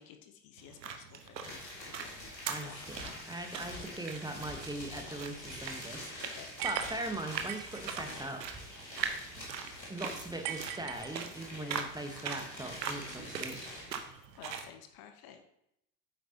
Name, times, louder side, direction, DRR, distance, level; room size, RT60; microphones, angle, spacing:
voice 1, 0.0-2.3 2.5-4.2 6.2-6.5 11.5-11.9 14.4-15.4, left 9 dB, 45° left, 7 dB, 1.0 m, -54 dB
sound 1, 0.6-14.7, right 6 dB, 80° right, 1.0 m, -42 dB
sound 2, 1.4-14.0, left 1 dB, 90° left, 2.1 m, -46 dB
voice 2, 2.5-8.6 9.9-13.6, right 1 dB, 10° right, 4 dB, 1.1 m, -41 dB
sound 3, 6.6-7.8 10.4-11.6, right 11 dB, 40° right, 0.7 m, -40 dB
9.6 x 7.9 x 2.8 m, 0.79 s
figure-of-eight pair, 70°, 50 cm